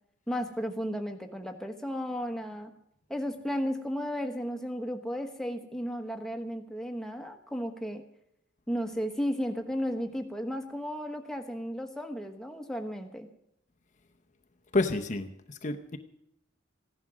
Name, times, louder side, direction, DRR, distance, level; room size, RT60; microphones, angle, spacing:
voice 1, 0.3-2.7 3.1-8.0 8.7-13.3, equal, 5° left, 4 dB, 1.2 m, -34 dB
voice 2, 14.7-16.0, left 2 dB, 40° left, 6 dB, 0.7 m, -29 dB
16.0 x 11.0 x 6.2 m, 0.80 s
head